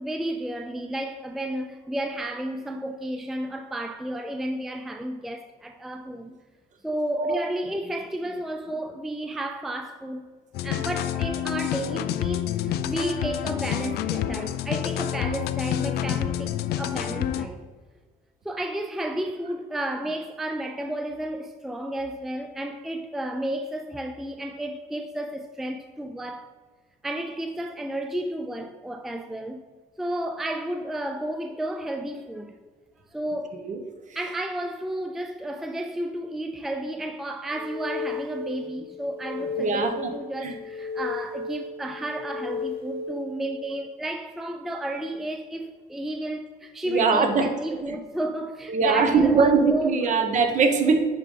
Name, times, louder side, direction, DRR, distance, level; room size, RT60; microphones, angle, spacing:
voice 1, 0.0-6.4 6.8-10.3 10.6-17.6 18.4-26.5 27.0-29.6 30.0-32.6 33.1-33.6 34.1-50.1, right 1 dB, ahead, 0.3 m, -32 dB
sound 1, 10.5-17.4, left 11 dB, 75° left, 0.4 m, -28 dB
sound 2, 37.6-38.7 39.1-40.2 40.6-41.7 42.1-43.3, left 4 dB, 35° left, 0.7 m, -33 dB
voice 2, 39.6-39.9 40.4-40.5 46.9-47.5 47.8-48.0 48.7-51.1, right 4 dB, 45° right, 1.0 m, -21 dB
10.5 x 3.8 x 3.3 m
cardioid pair, 110°, 17 cm